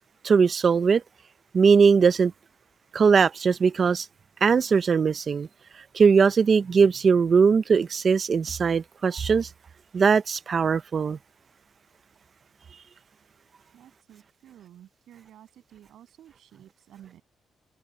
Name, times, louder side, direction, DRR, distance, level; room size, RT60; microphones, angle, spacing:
voice 1, 0.2-1.0 1.5-2.3 2.9-4.1 4.4-5.5 5.9-9.5 9.9-11.2, right 5 dB, 40° right, 0.6 m, -20 dB
voice 2, 13.7-17.2, right 11 dB, 90° right, 7.8 m, -52 dB
cardioid pair, 145°, 0 cm